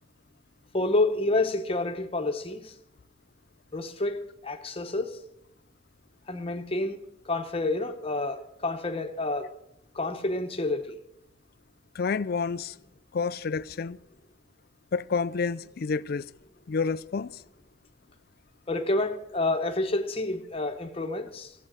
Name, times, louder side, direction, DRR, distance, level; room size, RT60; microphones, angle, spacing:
voice 1, 0.7-2.7 3.7-5.2 6.3-7.0 7.2-9.5 9.9-11.0 18.7-21.5, left 2 dB, 30° left, 1.1 m, -29 dB
voice 2, 11.9-12.7 13.1-14.0 14.9-16.3 16.7-17.4, left 5 dB, 50° left, 0.4 m, -29 dB
15.0 x 7.7 x 7.6 m
head